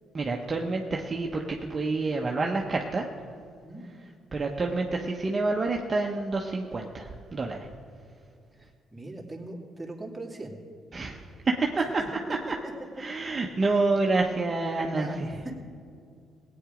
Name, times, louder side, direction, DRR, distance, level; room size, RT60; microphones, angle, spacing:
voice 1, 0.1-3.0 4.3-7.7 10.9-11.2 11.5-11.9 13.0-15.1, right 3 dB, 35° right, 0 dB, 1.0 m, -28 dB
voice 2, 8.5-10.6 12.0-12.1 12.6-12.7 14.9-15.5, right 2 dB, 10° right, -2 dB, 2.6 m, -40 dB
17.5 x 8.9 x 5.1 m, 2.3 s
cardioid pair, 80°, 0 cm